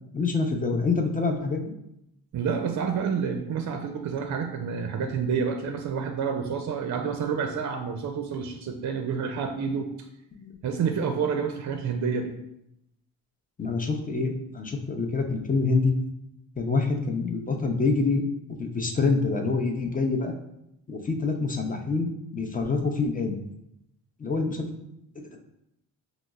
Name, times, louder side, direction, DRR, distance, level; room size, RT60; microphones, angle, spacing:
voice 1, 0.1-1.6 10.3-10.5 13.6-15.9 16.6-18.3 18.6-20.3 20.9-23.4 24.2-24.7 25.3-25.4, left 4 dB, 20° left, 4 dB, 0.5 m, -26 dB
voice 2, 2.3-9.9 10.6-12.3, right 6 dB, 50° right, 4 dB, 0.5 m, -29 dB
5.0 x 2.0 x 2.3 m, 0.81 s
cardioid pair, 75°, 38 cm